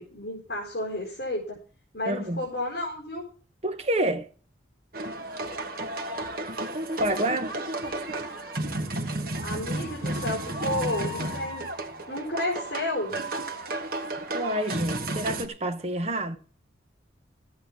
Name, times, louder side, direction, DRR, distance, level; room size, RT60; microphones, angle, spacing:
voice 1, 0.0-1.6 1.9-3.2 9.4-11.7 12.1-13.2, left 1 dB, 50° left, 4.6 m, -32 dB
voice 2, 2.1-2.5 3.6-4.3 7.0-7.6 14.3-16.4, right 1 dB, 35° right, 1.1 m, -28 dB
sound 1, 4.9-15.5, right 2 dB, 50° right, 1.3 m, -32 dB
13.5 x 8.5 x 6.1 m
head